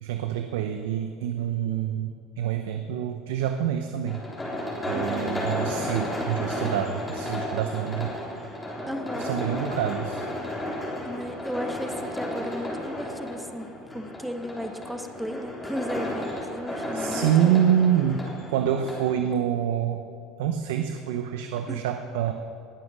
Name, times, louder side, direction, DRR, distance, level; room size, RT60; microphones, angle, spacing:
voice 1, 0.0-4.2 4.9-8.1 9.2-10.2 16.9-18.2 18.5-20.0 20.4-22.3, right 9 dB, 90° right, 6 dB, 0.7 m, -26 dB
sound 1, 4.1-19.1, left 1 dB, 15° left, 3.6 m, -33 dB
voice 2, 4.9-5.4 8.9-9.3 11.0-13.7 13.9-17.6 21.7-21.8, equal, ahead, 7 dB, 1.0 m, -35 dB
19.5 x 7.5 x 6.2 m, 2.5 s
supercardioid pair, 110°, 0 cm